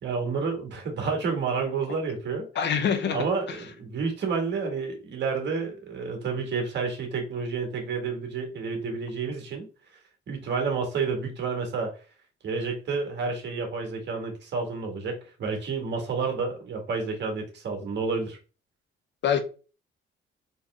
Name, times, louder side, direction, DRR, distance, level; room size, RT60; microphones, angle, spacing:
voice 1, 0.0-2.5 3.1-9.7 10.3-11.9 12.4-18.4, right 4 dB, 60° right, 1.9 m, -30 dB
voice 2, 2.5-3.6 19.2-19.4, left 7 dB, 60° left, 0.9 m, -26 dB
4.1 x 3.3 x 3.5 m
cardioid pair, 90°, 20 cm